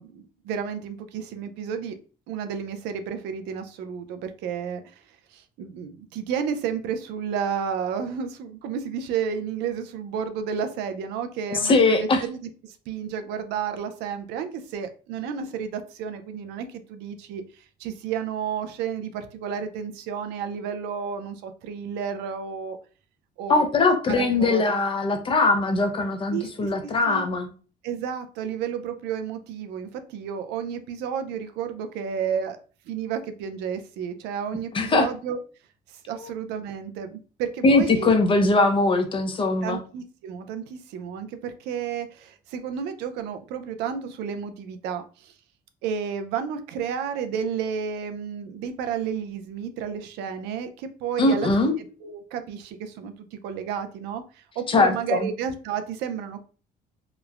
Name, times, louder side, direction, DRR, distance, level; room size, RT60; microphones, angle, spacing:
voice 1, 0.0-2.0 2.3-5.0 5.3-17.4 17.8-22.8 23.4-23.6 24.1-24.6 26.3-26.7 27.1-27.3 27.8-32.6 32.9-35.4 36.1-38.1 39.6-45.3 45.8-51.5 52.0-56.4, right 7 dB, 90° right, 8 dB, 0.4 m, -31 dB
voice 2, 11.5-12.2 23.5-27.5 34.7-35.1 36.2-36.3 37.6-39.8 51.2-51.8 54.7-55.3, left 3 dB, 30° left, 6 dB, 0.5 m, -21 dB
3.0 x 2.0 x 2.3 m, 0.38 s
cardioid pair, 110°, 17 cm